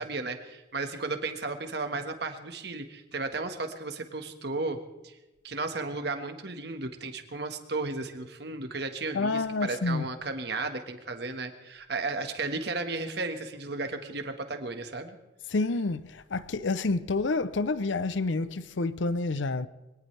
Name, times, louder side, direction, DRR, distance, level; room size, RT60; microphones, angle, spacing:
voice 1, 0.0-5.2 5.4-15.2, right 3 dB, 60° right, 1.6 m, -34 dB
voice 2, 9.1-10.1 15.5-19.7, left 3 dB, 75° left, 0.7 m, -28 dB
23.0 x 18.5 x 3.4 m
head